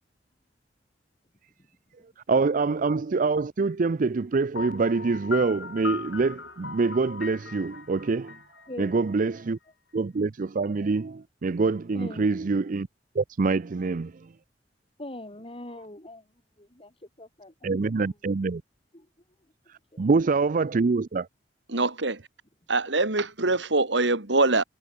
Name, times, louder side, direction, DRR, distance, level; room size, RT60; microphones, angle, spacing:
voice 1, 2.3-8.4 8.8-9.6 9.9-12.9 13.1-14.1 17.6-18.6 19.7-21.3, right 4 dB, 45° right, 0.5 m, -25 dB
Piano, 4.5-9.4, left 5 dB, 80° left, 2.5 m, -38 dB
voice 2, 8.7-9.1 11.9-12.4 15.0-16.3 16.6-18.1 18.9-19.1 19.9-20.1, left 1 dB, 30° left, 3.9 m, -42 dB
voice 3, 21.7-22.2 22.7-24.6, right 3 dB, 80° right, 2.8 m, -24 dB
head